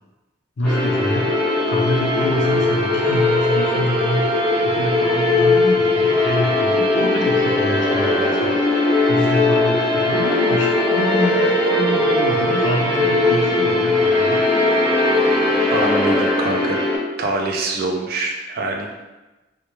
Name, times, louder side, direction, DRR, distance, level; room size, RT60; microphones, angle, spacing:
voice 1, 0.6-1.3 1.7-8.6 9.1-14.4, left 1 dB, 75° left, -2 dB, 0.5 m, -25 dB
sound 1, 0.6-17.0, left 2 dB, 5° left, 0.6 m, -19 dB
voice 2, 15.7-16.8 17.2-19.0, right 2 dB, 50° right, 1 dB, 0.4 m, -24 dB
2.1 x 2.1 x 2.9 m, 1.1 s
head